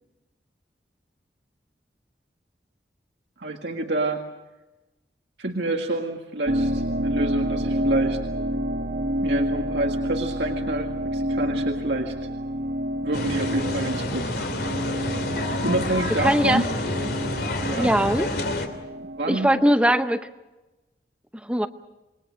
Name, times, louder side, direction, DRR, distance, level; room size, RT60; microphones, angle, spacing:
voice 1, 3.4-4.2 5.4-8.2 9.2-12.1 13.0-14.3 15.6-16.7 17.6-17.9 19.0-19.5, right 2 dB, 80° right, 2 dB, 1.9 m, -27 dB
sound 1, 6.4-19.7, equal, 60° right, 1.9 m, -29 dB
sound 2, 13.1-18.7, left 1 dB, 60° left, 2.9 m, -28 dB
voice 2, 16.2-16.6 17.8-18.3 19.3-20.3 21.4-21.7, right 1 dB, 5° right, 9 dB, 0.7 m, -20 dB
27.5 x 22.0 x 6.4 m, 1.1 s
head